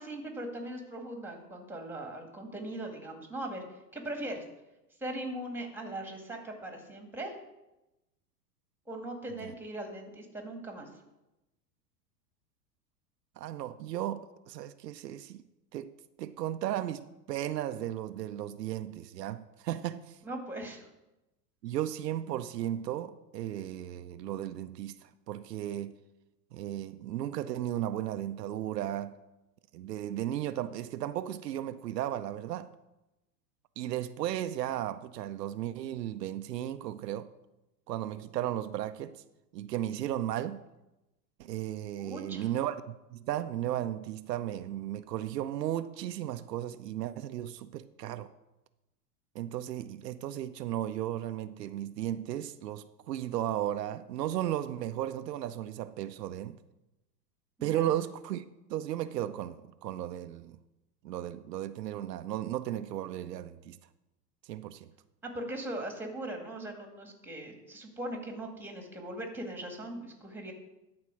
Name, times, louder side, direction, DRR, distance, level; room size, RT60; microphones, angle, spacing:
voice 1, 0.0-3.6 3.9-4.4 5.0-7.3 8.9-10.9 20.2-20.9 42.0-42.5 57.6-57.9 65.2-70.5, right 1 dB, 5° right, 1.9 m, -40 dB
voice 2, 13.4-15.4 15.7-20.2 21.6-25.9 26.5-29.1 29.7-32.7 33.8-37.3 37.9-39.2 39.5-40.6 41.4-48.3 49.3-56.6 57.6-58.4 58.7-60.6 61.0-63.8 64.4-64.9, right 12 dB, 85° right, 0.6 m, -35 dB
12.5 x 4.4 x 6.2 m
hypercardioid pair, 105°, 47 cm